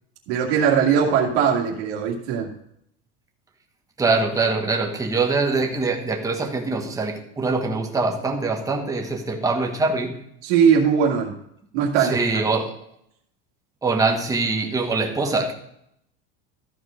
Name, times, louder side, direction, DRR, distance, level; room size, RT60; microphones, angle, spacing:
voice 1, 0.3-2.5 10.4-11.3 11.7-12.4, right 7 dB, 80° right, -2 dB, 2.0 m, -20 dB
voice 2, 4.0-10.2 12.0-12.8 13.8-15.5, right 3 dB, 10° right, 2 dB, 1.3 m, -23 dB
13.5 x 4.7 x 6.2 m, 0.74 s
cardioid pair, 155°, 32 cm